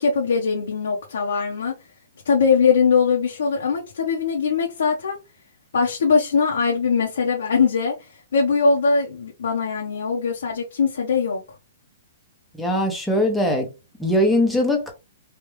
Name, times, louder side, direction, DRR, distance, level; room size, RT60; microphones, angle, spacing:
voice 1, 0.0-1.7 2.2-5.2 5.7-11.4, left 5 dB, 80° left, 1.0 m, -21 dB
voice 2, 12.6-13.7 14.0-14.9, left 1 dB, 5° left, 0.8 m, -20 dB
3.3 x 2.4 x 3.1 m
hypercardioid pair, 160°, 0 cm